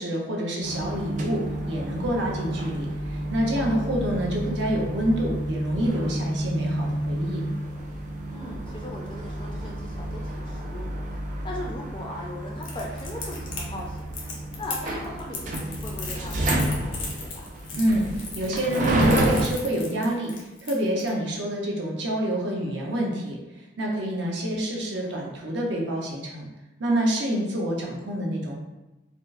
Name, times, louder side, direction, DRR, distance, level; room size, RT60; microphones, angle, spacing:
voice 1, 0.0-7.4 17.8-18.0 18.3-20.3 20.6-23.4 23.8-26.4 26.8-28.6, equal, 65° right, -1 dB, 0.7 m, -27 dB
sound 1, 0.6-19.5, right 1 dB, 40° right, 0.4 m, -30 dB
voice 2, 8.3-11.0 11.4-14.0 14.6-17.5 25.0-25.3, left 1 dB, 25° left, -1 dB, 0.4 m, -39 dB
Crackle, 12.6-21.1, left 4 dB, 85° left, 0.7 m, -37 dB
4.3 x 2.0 x 2.5 m, 1.1 s
head